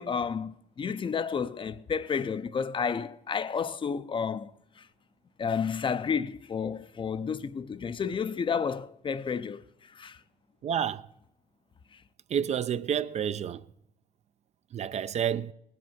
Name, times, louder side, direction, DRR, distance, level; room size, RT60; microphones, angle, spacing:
voice 1, 0.0-4.9 5.4-10.2 11.9-12.0, left 6 dB, 30° left, 0.5 m, -31 dB
voice 2, 10.6-11.1 12.3-13.7 14.7-15.5, right 8 dB, 40° right, 0.4 m, -29 dB
19.0 x 7.7 x 5.7 m
cardioid pair, 110°, 17 cm